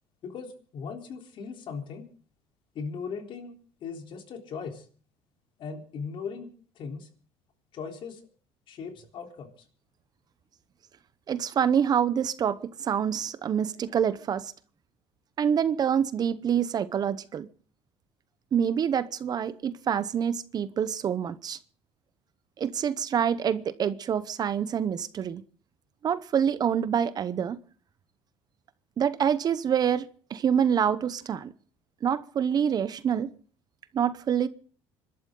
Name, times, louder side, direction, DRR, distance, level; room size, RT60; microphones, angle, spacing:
voice 1, 0.2-2.1 2.8-4.8 5.6-6.5 6.8-7.1 7.7-8.2 8.7-9.5, left 5 dB, 50° left, 3.7 m, -38 dB
voice 2, 11.3-14.5 15.4-17.5 18.5-21.6 22.6-25.4 26.0-27.6 29.0-31.5 32.0-33.3 33.9-34.5, right 8 dB, 40° right, 0.8 m, -26 dB
26.5 x 12.5 x 3.8 m
cardioid pair, 120°, 11 cm